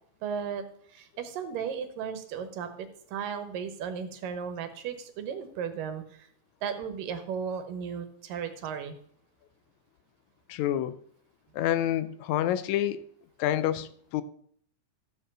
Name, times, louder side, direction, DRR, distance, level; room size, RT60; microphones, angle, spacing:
voice 1, 0.2-0.6 0.9-6.3 6.6-9.0, right 7 dB, 90° right, 2.8 m, -35 dB
voice 2, 10.5-11.0 11.5-13.1 13.4-14.2, left 12 dB, 80° left, 1.7 m, -28 dB
13.0 x 4.6 x 7.4 m
omnidirectional pair, 3.8 m